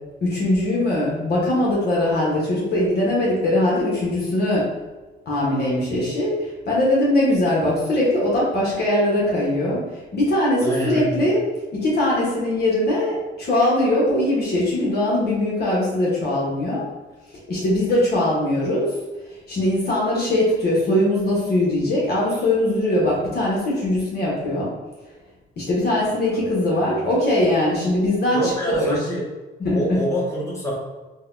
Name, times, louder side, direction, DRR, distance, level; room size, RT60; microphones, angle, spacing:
voice 1, 0.2-4.7 5.3-11.4 11.7-16.9 17.5-18.9 19.5-24.7 25.6-28.9 29.6-29.8, left 1 dB, 55° left, -5 dB, 1.0 m, -21 dB
voice 2, 10.6-11.2 26.0-26.5 26.7-27.2 28.3-29.2 29.7-30.7, right 1 dB, 15° left, -6 dB, 1.3 m, -27 dB
3.9 x 2.2 x 2.5 m, 1.2 s
cardioid pair, 90°, 20 cm